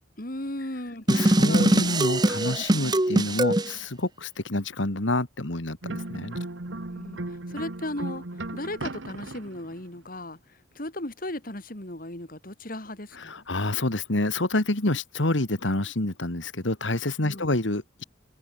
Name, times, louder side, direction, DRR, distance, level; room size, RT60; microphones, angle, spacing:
voice 1, 0.2-1.9 6.9-7.2 7.5-8.2 8.5-10.4 10.8-13.4 17.2-17.6, left 1 dB, 50° left, 3.4 m, -36 dB
voice 2, 1.1-6.4 13.1-18.0, left 2 dB, 85° left, 2.3 m, -28 dB
sound 1, 1.1-3.7, right 1 dB, 20° right, 1.1 m, -22 dB
sound 2, 5.8-9.8, right 2 dB, 90° right, 1.8 m, -36 dB
head